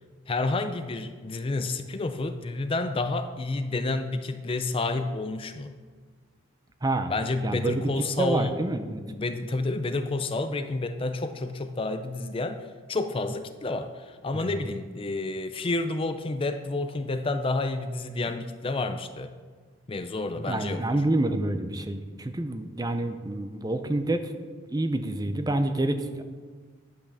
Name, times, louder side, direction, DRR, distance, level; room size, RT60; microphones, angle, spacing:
voice 1, 0.3-5.7 7.1-8.6 9.1-19.3 19.9-21.0, left 2 dB, 25° left, 9 dB, 0.4 m, -30 dB
voice 2, 6.8-7.1 7.4-7.9 8.2-9.0 14.3-14.5 20.4-24.3 24.7-26.2, right 1 dB, 20° right, 8 dB, 0.6 m, -28 dB
10.5 x 5.9 x 6.7 m, 1.5 s
head